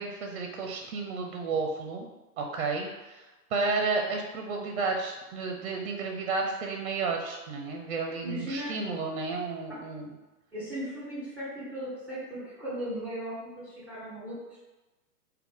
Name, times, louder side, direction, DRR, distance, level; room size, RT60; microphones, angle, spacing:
voice 1, 0.0-2.1 2.4-3.2 3.5-10.1, right 4 dB, 45° right, 2 dB, 0.5 m, -32 dB
voice 2, 7.9-8.7 9.7-9.8 10.5-14.4, equal, 5° right, -9 dB, 1.3 m, -37 dB
3.7 x 2.2 x 3.6 m, 1.1 s
figure-of-eight pair, 115°, 47 cm